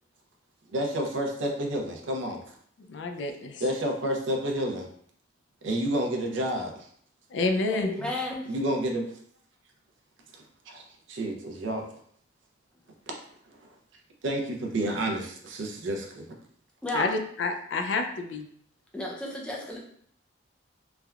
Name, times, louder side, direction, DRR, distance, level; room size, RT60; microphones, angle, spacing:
voice 1, 0.7-2.4 3.6-4.9 5.6-6.7 8.5-9.0 10.3-11.8 13.1-13.2 14.2-16.3, right 1 dB, 85° right, 2 dB, 0.5 m, -30 dB
voice 2, 2.9-3.6 7.3-8.1 16.9-18.4, left 3 dB, 65° left, 5 dB, 0.4 m, -29 dB
voice 3, 7.7-8.5 16.8-17.1 18.9-19.8, left 1 dB, 5° left, -2 dB, 0.5 m, -33 dB
3.3 x 2.2 x 2.3 m, 0.63 s
head